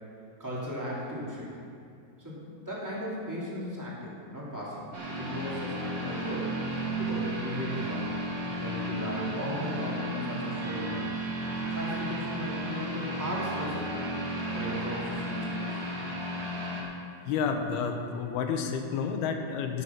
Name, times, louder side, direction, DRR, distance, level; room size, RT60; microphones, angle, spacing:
voice 1, 0.4-1.5 2.2-4.9 5.2-6.5 7.0-8.0 8.6-11.1 11.7-14.0 14.5-15.7, equal, 5° right, -6 dB, 2.4 m, -36 dB
sound 1, 4.9-16.8, right 1 dB, 45° right, 3.0 m, -33 dB
sound 2, 10.6-19.3, right 6 dB, 85° right, 2.9 m, -54 dB
voice 2, 17.3-19.8, left 6 dB, 85° left, 5 dB, 2.9 m, -30 dB
15.5 x 8.3 x 6.0 m, 2.4 s
omnidirectional pair, 4.4 m